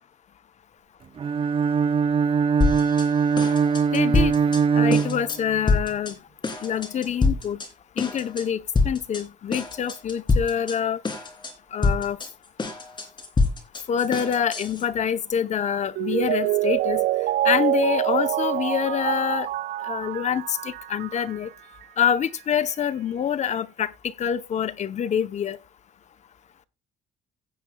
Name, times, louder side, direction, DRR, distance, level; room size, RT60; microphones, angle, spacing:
Bowed string instrument, 1.2-5.8, right 6 dB, 30° right, 0.7 m, -21 dB
sound 1, 2.6-3.1 3.4-4.6 4.9-5.4 5.7-6.1 6.4-7.7 8.0-8.4 8.8-9.2 9.5-10.8 11.0-11.5 11.8-14.8, left 3 dB, 25° left, 3.1 m, -25 dB
voice 1, 3.9-4.3 4.7-6.1 6.6-7.6 8.0-11.0 11.7-12.2 13.9-17.0 17.4-19.5 19.9-21.5 22.0-25.6, left 8 dB, 45° left, 0.8 m, -26 dB
Mallet percussion, 16.0-21.5 21.8-21.9, right 15 dB, 65° right, 0.4 m, -26 dB
17.0 x 7.8 x 2.3 m
cardioid pair, 110°, 17 cm